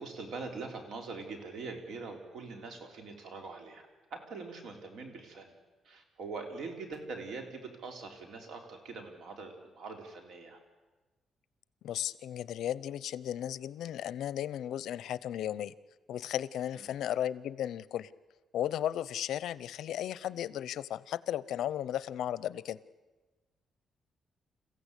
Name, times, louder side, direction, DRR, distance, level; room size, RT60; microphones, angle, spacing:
voice 1, 0.0-5.5 5.8-10.6 16.7-17.0, right 4 dB, 70° right, 4 dB, 3.8 m, -43 dB
voice 2, 11.8-15.7 16.1-18.1 18.5-22.8, left 11 dB, 80° left, 18 dB, 0.7 m, -35 dB
28.5 x 15.5 x 8.3 m, 1.2 s
cardioid pair, 140°, 0 cm